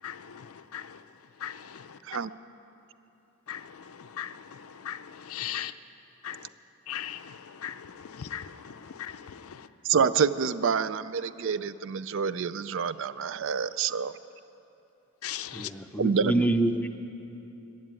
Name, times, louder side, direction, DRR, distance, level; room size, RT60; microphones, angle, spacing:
voice 1, 0.0-0.4 0.7-0.8 1.4-1.6 3.5-3.6 4.2-4.3 4.8-5.0 5.3-5.7 6.2-6.4 6.9-7.2 7.6-7.7 8.1-8.7 9.0-9.2 15.2-15.7, left 11 dB, 70° left, 11 dB, 0.5 m, -36 dB
voice 2, 9.9-14.1 16.0-16.3, right 6 dB, 55° right, 15 dB, 0.4 m, -27 dB
voice 3, 15.5-16.9, right 1 dB, 5° left, 6 dB, 0.5 m, -26 dB
15.5 x 10.0 x 8.8 m, 2.9 s
head